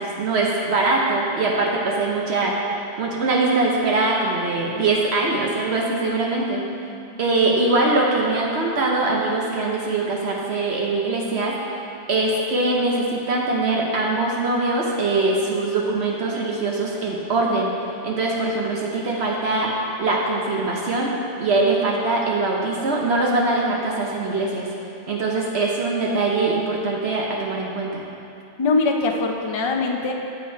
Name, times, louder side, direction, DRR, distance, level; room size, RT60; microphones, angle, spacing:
voice 1, 0.0-2.5 3.0-6.6 7.2-17.7 18.0-21.1 21.4-24.7 25.1-28.0, right 2 dB, 60° right, -2 dB, 1.0 m, -22 dB
voice 2, 6.9-7.2 28.6-30.1, left 3 dB, 40° left, 2 dB, 0.4 m, -23 dB
7.8 x 5.1 x 4.5 m, 2.7 s
omnidirectional pair, 1.3 m